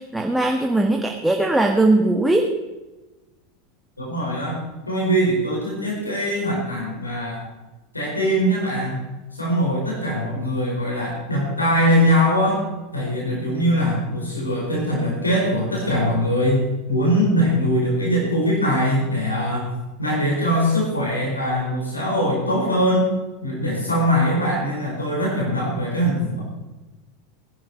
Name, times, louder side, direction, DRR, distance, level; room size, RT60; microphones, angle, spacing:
voice 1, 0.0-2.5, right 2 dB, 5° right, 2 dB, 1.4 m, -19 dB
voice 2, 4.0-4.6 4.9-7.4 7.9-9.0 9.3-12.7 12.9-19.7 20.0-23.1 23.4-26.4, equal, 85° left, -4 dB, 4.7 m, -22 dB
19.0 x 11.5 x 4.4 m, 1.1 s
figure-of-eight pair, 80°, 0 cm